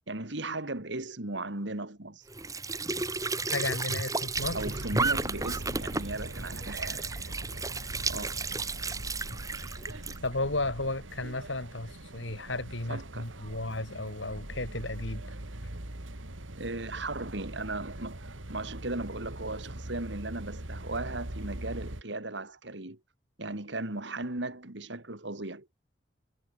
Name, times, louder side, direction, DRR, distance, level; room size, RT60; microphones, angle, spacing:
voice 1, 0.1-2.3 4.5-7.3 7.6-7.7 8.1-8.4 12.9-13.4 16.5-18.2 18.5-23.0 23.4-25.7, right 2 dB, 70° right, 2.5 m, -37 dB
Squeak / Sink (filling or washing) / Trickle dribble, 2.3-10.2, right 3 dB, 15° right, 2.8 m, -33 dB
voice 2, 3.5-4.6 10.2-15.2, left 2 dB, 75° left, 4.0 m, -34 dB
sound 1, 4.3-22.0, right 1 dB, 90° right, 2.7 m, -42 dB
head